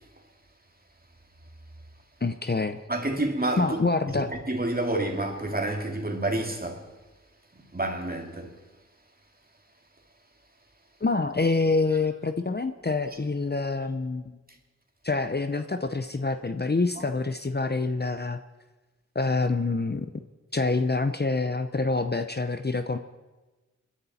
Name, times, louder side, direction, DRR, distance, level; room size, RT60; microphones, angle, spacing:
voice 1, 2.2-2.8 3.6-4.3 11.0-14.2 15.0-18.4 19.1-20.2 20.5-23.0, left 3 dB, 35° left, 0.7 m, -26 dB
voice 2, 2.9-3.9 4.5-6.9 7.5-8.5, right 2 dB, 30° right, 2.5 m, -29 dB
29.5 x 11.0 x 4.3 m
wide cardioid pair, 55°, 29 cm